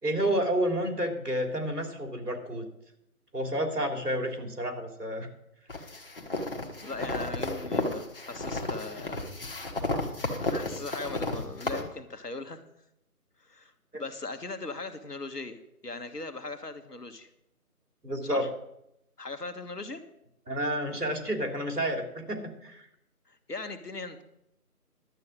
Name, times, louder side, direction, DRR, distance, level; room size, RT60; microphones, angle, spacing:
voice 1, 0.0-2.6 3.3-5.3 13.9-14.0 18.0-18.4 20.5-22.9, right 1 dB, 85° right, 3 dB, 3.2 m, -30 dB
sound 1, 5.7-11.8, left 2 dB, 35° left, 1.5 m, -32 dB
voice 2, 6.8-9.3 10.5-12.6 13.4-17.3 18.2-18.5 19.2-20.0 23.3-24.2, left 3 dB, 85° left, 8 dB, 1.7 m, -39 dB
12.0 x 8.2 x 6.2 m, 0.81 s
figure-of-eight pair, 165°, 46 cm